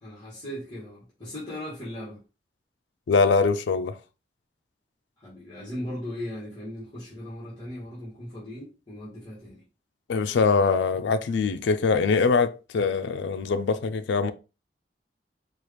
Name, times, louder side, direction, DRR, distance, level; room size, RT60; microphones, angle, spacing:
voice 1, 0.0-2.2 5.2-9.6, left 1 dB, 25° left, 1.6 m, -38 dB
voice 2, 3.1-3.9 10.1-14.3, left 4 dB, 90° left, 0.4 m, -23 dB
4.5 x 2.4 x 3.2 m
head